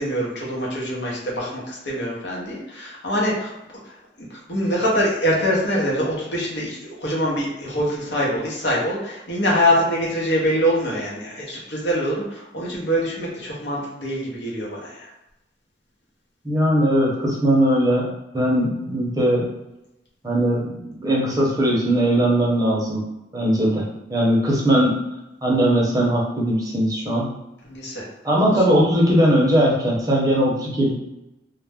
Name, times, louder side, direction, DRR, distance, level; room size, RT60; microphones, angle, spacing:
voice 1, 0.0-3.5 4.2-15.1 27.6-28.1, equal, 70° left, -4 dB, 0.8 m, -24 dB
voice 2, 16.4-19.5 20.2-23.1 23.3-24.9 25.4-27.3 28.2-30.9, equal, 20° right, -4 dB, 0.6 m, -19 dB
2.3 x 2.0 x 3.4 m, 0.95 s
head